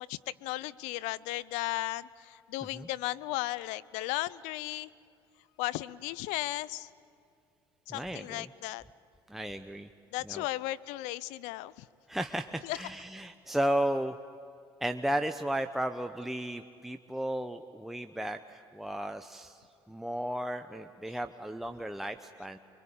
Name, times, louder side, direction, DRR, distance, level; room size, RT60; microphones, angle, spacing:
voice 1, 0.0-4.9 5.6-6.9 7.9-8.8 10.1-11.9 12.6-12.8, left 18 dB, 75° left, 18 dB, 0.6 m, -35 dB
voice 2, 7.9-8.5 9.3-9.9 10.2-10.5 12.1-14.2 14.8-22.6, right 1 dB, ahead, 7 dB, 0.9 m, -34 dB
26.0 x 24.0 x 8.8 m, 2.4 s
hypercardioid pair, 65°, 12 cm